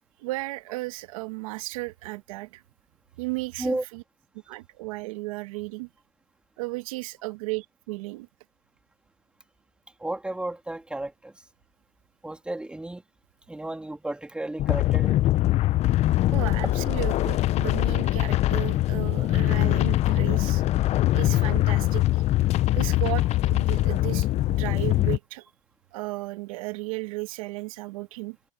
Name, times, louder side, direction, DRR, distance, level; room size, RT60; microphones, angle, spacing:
voice 1, 0.2-2.6 3.2-4.0 4.5-5.9 6.6-8.3 16.3-20.6 21.1-22.2 22.7-25.5 25.9-28.4, right 23 dB, 80° right, 1.5 m, -34 dB
voice 2, 10.0-11.3 12.2-13.0 13.5-15.2, right 1 dB, 5° right, 3.0 m, -33 dB
sound 1, 14.6-25.2, left 15 dB, 40° left, 0.6 m, -23 dB
supercardioid pair, 130°, 17 cm